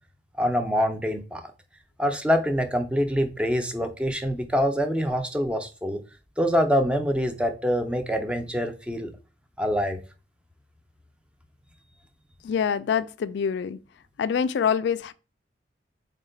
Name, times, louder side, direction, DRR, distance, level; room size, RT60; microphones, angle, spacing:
voice 1, 0.4-1.4 2.0-6.0 6.4-9.1 9.6-10.0, equal, 5° right, 0.4 m, -25 dB
voice 2, 12.4-13.8 14.2-15.1, left 7 dB, 70° left, 0.3 m, -25 dB
4.0 x 2.2 x 3.8 m
head